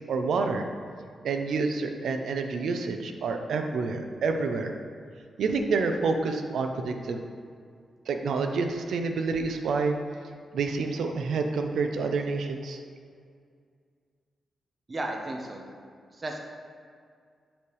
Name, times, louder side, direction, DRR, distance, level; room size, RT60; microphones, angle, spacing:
voice 1, 0.1-0.7 1.2-4.7 5.4-7.2 8.1-10.0 10.5-12.8, right 4 dB, 75° right, 5 dB, 0.5 m, -28 dB
voice 2, 14.9-15.6 16.1-16.4, right 2 dB, 25° right, 1 dB, 0.7 m, -34 dB
7.0 x 3.2 x 5.4 m, 2.2 s
wide cardioid pair, 175°, 0 cm